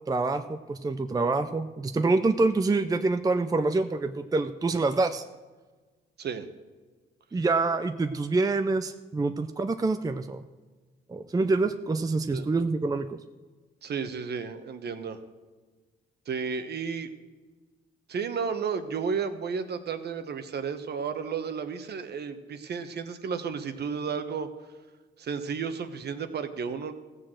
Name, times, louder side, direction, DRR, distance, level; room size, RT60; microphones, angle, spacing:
voice 1, 0.1-5.2 7.3-10.4 11.1-13.2, right 3 dB, 20° right, 9 dB, 0.6 m, -26 dB
voice 2, 13.8-15.2 16.3-17.1 18.1-24.5 25.2-26.9, right 6 dB, 55° right, 9 dB, 1.2 m, -32 dB
15.0 x 6.5 x 7.7 m, 1.3 s
cardioid pair, 90°, 20 cm